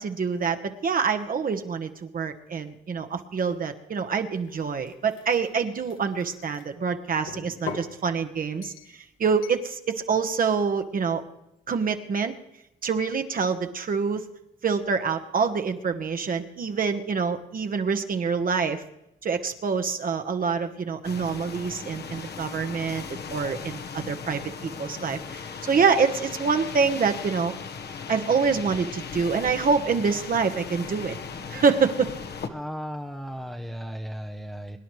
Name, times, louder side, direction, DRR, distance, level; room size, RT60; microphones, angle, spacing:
voice 1, 0.0-8.7 9.2-11.2 11.7-12.3 12.8-14.2 14.6-18.8 19.2-23.0 23.3-27.5 28.1-31.2 31.5-32.1, right 5 dB, 45° right, 6 dB, 1.2 m, -26 dB
sound 1, 4.4-6.7 7.3-7.9 8.6-9.0 9.4-9.7, left 6 dB, 90° left, 1.6 m, -41 dB
sound 2, 21.0-32.5, left 6 dB, 55° left, 1.2 m, -37 dB
voice 2, 32.5-34.8, equal, ahead, 3 dB, 0.8 m, -35 dB
24.0 x 10.0 x 3.2 m, 0.84 s
cardioid pair, 90°, 20 cm